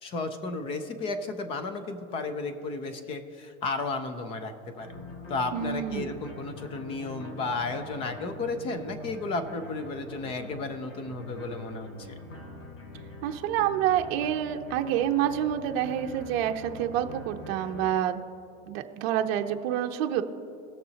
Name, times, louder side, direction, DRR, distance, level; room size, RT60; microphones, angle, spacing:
voice 1, 0.0-4.9 5.3-12.1, left 3 dB, 15° left, 9 dB, 0.3 m, -33 dB
sound 1, 4.8-17.9, left 1 dB, 75° left, 2.3 m, -44 dB
voice 2, 5.5-6.1 13.2-18.2 18.7-20.2, right 10 dB, 50° right, 4 dB, 0.7 m, -28 dB
18.0 x 6.7 x 2.8 m, 2.7 s
supercardioid pair, 150°, 39 cm